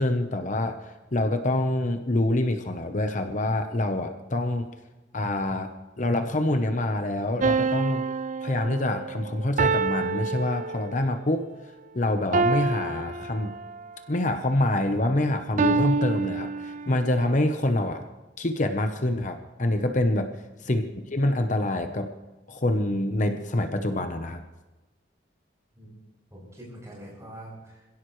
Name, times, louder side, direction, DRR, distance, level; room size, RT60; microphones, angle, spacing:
voice 1, 0.0-4.7 5.1-5.7 6.0-8.0 8.4-11.5 11.9-13.5 14.1-18.0 18.4-20.3 20.6-20.8 21.1-22.1 22.5-24.4, left 1 dB, 45° left, 7 dB, 0.9 m, -26 dB
sound 1, 7.4-11.1 12.3-13.9 15.6-17.1, right 4 dB, 45° right, 0.4 m, -27 dB
voice 2, 20.6-20.9 25.7-25.9 26.3-27.9, right 1 dB, 15° right, -4 dB, 7.5 m, -44 dB
26.5 x 16.5 x 3.2 m, 1.1 s
head